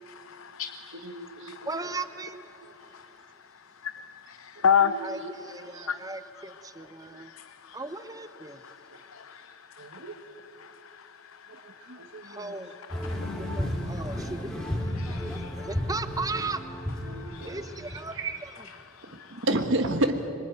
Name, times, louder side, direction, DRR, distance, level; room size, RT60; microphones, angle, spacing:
voice 1, 0.1-1.7 2.9-3.1 3.8-5.0 5.9-6.0 7.2-7.8 8.6-10.2 10.6-12.4 13.1-14.3 15.0-15.5 17.1-17.5 18.9-19.5, left 7 dB, 75° left, 0.7 m, -33 dB
voice 2, 0.9-1.8 2.6-2.7 4.6-5.3 5.7-5.9 7.1-7.2 9.8-10.1 11.5-12.7 13.3-13.6 17.1-17.6 18.1-18.4 19.1-20.3, right 1 dB, 60° right, 1.4 m, -32 dB
voice 3, 1.6-2.5 5.0-7.3 7.7-8.6 12.2-12.7 13.4-16.6 17.4-18.1 18.4-18.7, right 3 dB, 15° right, 1.0 m, -37 dB
sound 1, 12.9-18.0, left 1 dB, 5° left, 2.8 m, -33 dB
25.5 x 23.5 x 9.1 m
head